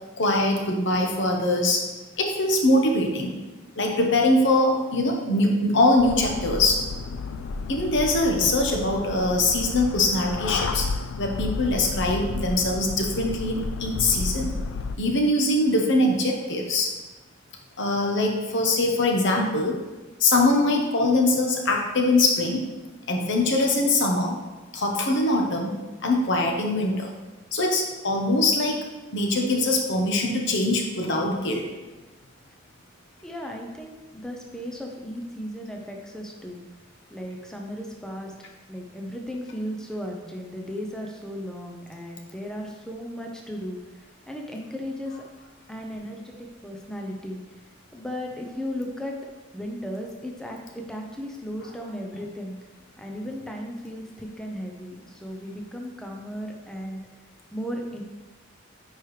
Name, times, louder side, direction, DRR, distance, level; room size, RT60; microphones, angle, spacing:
voice 1, 0.2-1.9 2.2-3.4 3.8-6.8 7.7-10.9 11.2-14.5 14.9-16.9 17.8-19.8 20.2-22.7 23.1-24.3 24.7-27.1 27.5-28.8 29.1-31.6, left 2 dB, 65° left, 2 dB, 1.1 m, -22 dB
sound 1, 6.0-15.0, left 4 dB, 85° left, 0.4 m, -32 dB
voice 2, 33.2-36.6 37.1-38.3 38.7-45.2 45.7-47.6 47.9-49.2 49.5-52.6 53.0-57.0 57.5-58.0, equal, 5° left, 1 dB, 0.6 m, -35 dB
9.5 x 4.6 x 3.2 m, 1.2 s
head